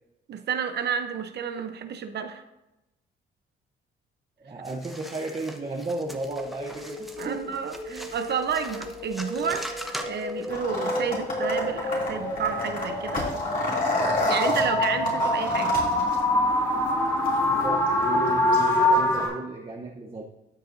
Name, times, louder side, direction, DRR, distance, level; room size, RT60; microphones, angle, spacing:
voice 1, 0.3-2.4 7.2-9.7 10.0-13.3 14.3-15.8, right 7 dB, 60° right, 8 dB, 0.8 m, -30 dB
voice 2, 4.4-7.4 7.9-8.1 14.6-14.8 17.5-20.2, right 2 dB, 30° right, 0 dB, 1.0 m, -34 dB
sound 1, 4.7-10.6, equal, ahead, 0.9 m, -41 dB
sound 2, 6.1-19.3, left 1 dB, 20° left, 2.1 m, -27 dB
sound 3, 10.5-19.3, left 2 dB, 45° left, 2.7 m, -32 dB
12.5 x 6.6 x 2.7 m, 0.94 s
cardioid pair, 90°, 20 cm